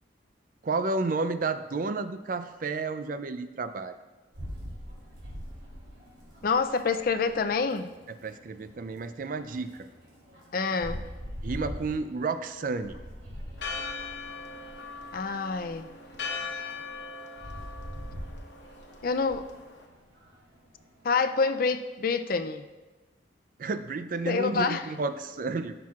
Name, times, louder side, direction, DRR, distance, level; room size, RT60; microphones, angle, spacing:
voice 1, 0.6-4.0 8.1-9.9 11.4-12.9 23.6-25.7, right 3 dB, 45° right, 10 dB, 0.4 m, -31 dB
sound 1, 4.3-21.1, equal, 85° right, 2.6 m, -44 dB
voice 2, 6.4-7.9 10.5-11.1 15.1-15.9 19.0-19.4 21.0-22.6 24.2-24.9, left 4 dB, 50° left, 9 dB, 0.4 m, -27 dB
Church bell, 13.6-19.9, left 4 dB, 70° left, 1.0 m, -40 dB
15.0 x 6.0 x 2.4 m, 1.2 s
head